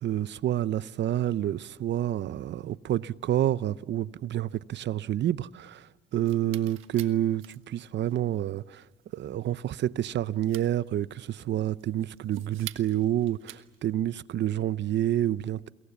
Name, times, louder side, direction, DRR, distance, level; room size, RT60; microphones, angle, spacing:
voice 1, 0.0-8.8 9.1-15.7, right 12 dB, 65° right, 0.7 m, -28 dB
sound 1, 6.1-14.0, right 13 dB, 90° right, 1.4 m, -48 dB
29.5 x 23.0 x 7.1 m
cardioid pair, 90°, 20 cm